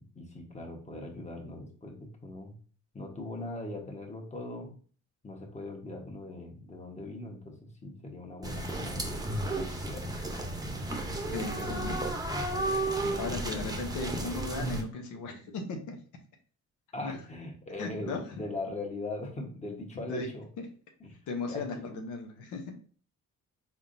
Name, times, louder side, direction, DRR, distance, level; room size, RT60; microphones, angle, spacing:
voice 1, 0.0-2.5 2.9-4.7 5.2-10.1 11.1-11.8 13.0-13.5 16.9-20.5 21.0-21.2 21.4-22.0, left 2 dB, 25° left, 2 dB, 1.2 m, -40 dB
sound 1, 8.4-14.8, right 2 dB, 10° right, 0.7 m, -33 dB
voice 2, 11.3-12.0 13.2-16.0 17.0-17.2 17.8-18.2 20.1-20.3 20.6-20.7 21.3-22.7, left 3 dB, 85° left, 3 dB, 0.9 m, -36 dB
4.3 x 3.4 x 2.6 m, 0.42 s
cardioid pair, 90°, 30 cm